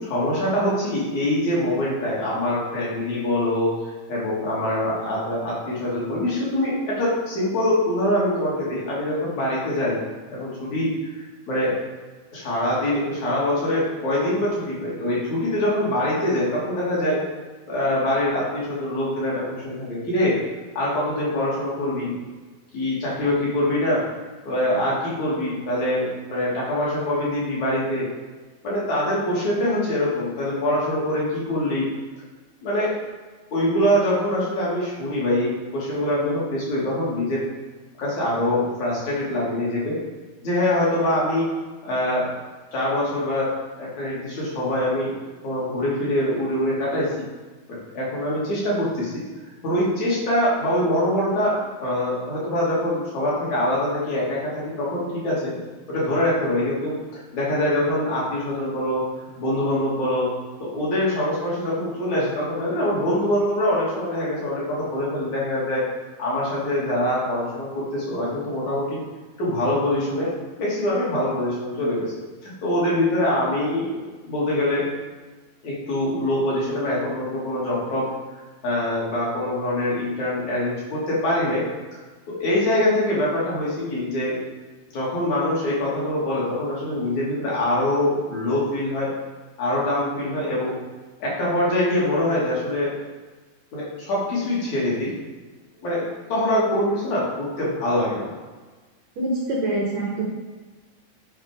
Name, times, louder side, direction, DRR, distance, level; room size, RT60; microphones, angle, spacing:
voice 1, 0.0-3.7 4.1-10.0 10.3-11.8 12.3-17.2 17.7-20.4 20.8-22.1 22.7-24.0 24.5-28.1 28.6-31.9 32.6-32.9 33.5-37.4 38.0-40.0 40.4-41.5 41.8-42.2 42.7-43.5 43.7-45.1 45.4-47.1 47.7-49.2 49.6-55.5 55.9-59.0 59.4-60.3 60.6-65.8 66.2-69.0 69.4-70.3 70.6-72.1 72.4-74.9 75.6-78.1 78.6-81.6 82.3-84.4 84.9-89.1 89.6-90.7 91.2-92.9 93.7-95.1 95.8-96.0 96.3-98.3, left 1 dB, 50° left, -7 dB, 3.8 m, -24 dB
voice 2, 99.2-100.3, right 2 dB, 65° right, -4 dB, 1.8 m, -25 dB
9.0 x 5.0 x 5.3 m, 1.3 s
omnidirectional pair, 4.4 m